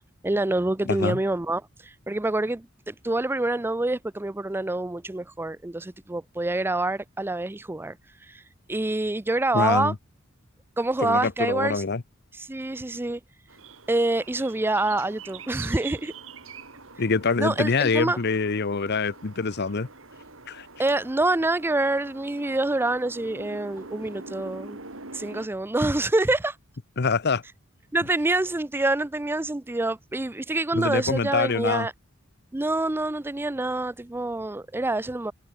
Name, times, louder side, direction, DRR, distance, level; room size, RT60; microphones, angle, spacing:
voice 1, 0.2-8.0 8.3-8.4 8.7-9.9 10.8-11.8 12.4-13.2 13.9-16.1 17.4-18.2 20.8-24.8 25.1-26.6 27.9-31.9 32.5-35.3, right 2 dB, 10° right, 0.5 m, -26 dB
voice 2, 0.9-1.2 9.5-9.9 11.0-12.0 17.0-19.9 20.5-20.7 27.0-27.4 30.7-31.9, left 4 dB, 55° left, 0.8 m, -25 dB
sound 1, 13.5-25.5, right 4 dB, 70° right, 4.2 m, -44 dB
head